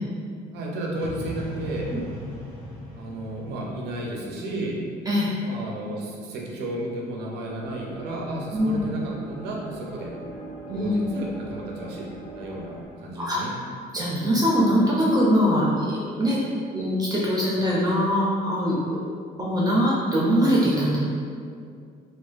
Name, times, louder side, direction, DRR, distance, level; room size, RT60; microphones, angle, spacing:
voice 1, 0.5-1.9 2.9-4.8 5.4-10.1 10.7-12.1 12.4-13.5, right 1 dB, 80° right, -2 dB, 0.5 m, -33 dB
sound 1, 1.0-4.9, left 1 dB, 60° left, 0.7 m, -38 dB
sound 2, 7.4-12.9, right 1 dB, 20° left, 0.7 m, -41 dB
voice 2, 13.9-16.4 16.7-19.0 19.4-21.0, equal, 20° right, -5 dB, 0.4 m, -22 dB
2.4 x 2.3 x 2.3 m, 2.3 s
cardioid pair, 110°, 17 cm